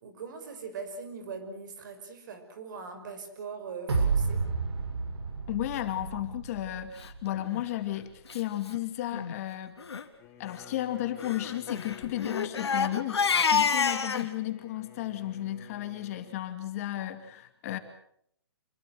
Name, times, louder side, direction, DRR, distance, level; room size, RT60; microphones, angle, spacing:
voice 1, 0.0-4.5, right 5 dB, 45° right, 8 dB, 5.8 m, -41 dB
sound 1, 3.9-7.2, right 4 dB, 80° right, 7.6 m, -31 dB
voice 2, 5.5-9.8 10.4-17.8, left 14 dB, 35° left, 7 dB, 2.4 m, -34 dB
Crying sobbing, 7.4-7.6 8.3-8.4 8.7-8.8 9.1-9.3 9.8-10.0 11.2-14.3, left 6 dB, 80° left, 3.1 m, -28 dB
Bowed string instrument, 10.2-16.5, left 6 dB, 20° left, 6.0 m, -52 dB
28.0 x 23.0 x 6.5 m, 0.70 s
hypercardioid pair, 160°, 13 cm